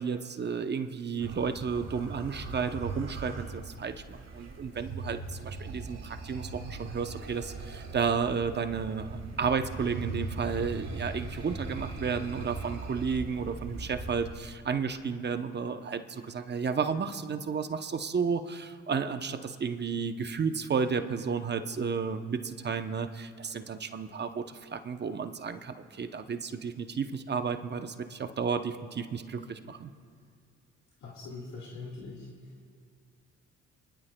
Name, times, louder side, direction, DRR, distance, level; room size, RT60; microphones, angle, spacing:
voice 1, 0.0-29.9, right 6 dB, 35° right, 8 dB, 0.7 m, -32 dB
sound 1, 1.2-14.3, right 3 dB, 60° right, 2.0 m, -40 dB
voice 2, 31.0-32.8, left 3 dB, 65° left, -2 dB, 1.9 m, -43 dB
26.5 x 11.5 x 2.2 m, 2.2 s
cardioid pair, 90°, 30 cm